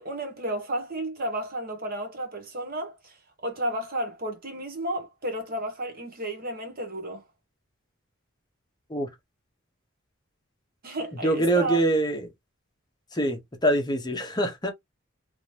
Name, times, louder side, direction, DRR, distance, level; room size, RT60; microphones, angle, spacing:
voice 1, 0.0-3.1 3.4-7.2 10.8-11.8, right 1 dB, 45° right, 1.0 m, -32 dB
voice 2, 11.2-12.3 13.1-14.7, right 1 dB, 20° left, 0.8 m, -24 dB
2.9 x 2.9 x 3.2 m
head